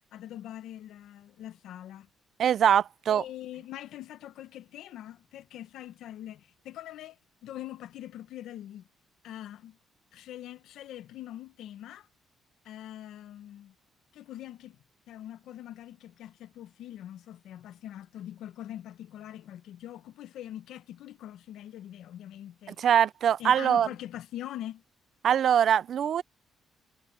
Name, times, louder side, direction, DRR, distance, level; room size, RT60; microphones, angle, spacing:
voice 1, 0.1-2.1 3.1-7.2 7.4-8.9 9.2-9.8 10.1-12.1 12.6-13.7 14.1-14.8 15.1-22.8 23.4-24.8, left 12 dB, 80° left, 1.2 m, -43 dB
voice 2, 2.4-3.2 22.8-23.9 25.2-26.2, right 9 dB, 65° right, 0.5 m, -23 dB
cardioid pair, 90°, 0 cm